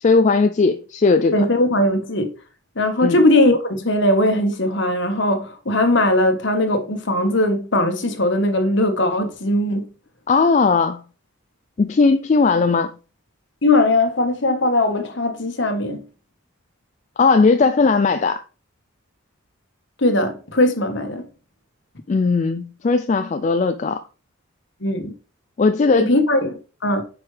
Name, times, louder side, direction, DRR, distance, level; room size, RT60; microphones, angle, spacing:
voice 1, 0.0-1.3 3.0-3.2 10.3-11.0 11.8-12.9 17.2-18.4 22.1-24.0 25.6-26.2, left 4 dB, 35° left, 0.3 m, -17 dB
voice 2, 1.3-2.3 2.7-9.8 13.6-16.0 20.0-21.2 24.8-25.1 25.9-27.0, left 1 dB, 55° left, 1.4 m, -19 dB
9.1 x 5.3 x 3.3 m
head